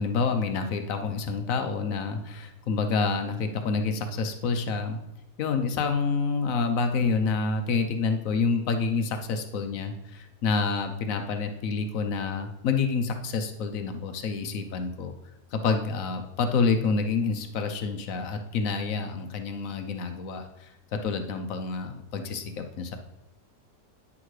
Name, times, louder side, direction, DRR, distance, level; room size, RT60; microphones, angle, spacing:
voice 1, 0.0-5.0 5.4-15.1 15.5-20.7 21.0-23.0, left 4 dB, 60° left, 6 dB, 1.0 m, -28 dB
9.7 x 6.2 x 3.1 m, 0.88 s
omnidirectional pair, 1.9 m